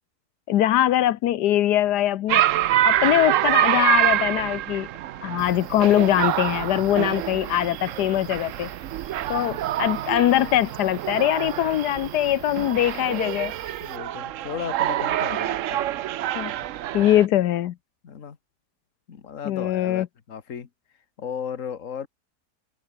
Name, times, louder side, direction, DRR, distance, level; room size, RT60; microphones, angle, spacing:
voice 1, 0.5-2.5 2.8-4.9 5.2-8.7 9.3-13.5 16.4-16.5 16.9-17.7 19.5-20.1, left 12 dB, 85° left, 1.3 m, -22 dB
sound 1, 2.3-17.3, right 13 dB, 65° right, 0.9 m, -26 dB
sound 2, 5.4-14.0, right 4 dB, 40° right, 2.1 m, -47 dB
voice 2, 13.8-15.9 18.0-18.4 19.1-20.7 21.2-22.1, left 7 dB, 55° left, 1.8 m, -35 dB
omnidirectional pair, 1.7 m